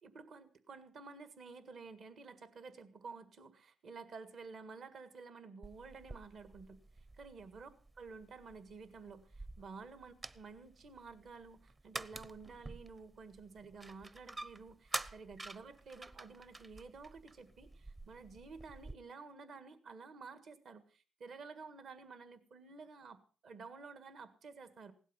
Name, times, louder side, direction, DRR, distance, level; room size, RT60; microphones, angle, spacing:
voice 1, 0.0-7.7 8.0-24.9, right 4 dB, 60° right, 11 dB, 1.7 m, -52 dB
sound 1, 5.6-19.0, right 2 dB, 25° right, 0.7 m, -49 dB
16.5 x 12.0 x 5.6 m, 0.39 s
cardioid pair, 90°, 0 cm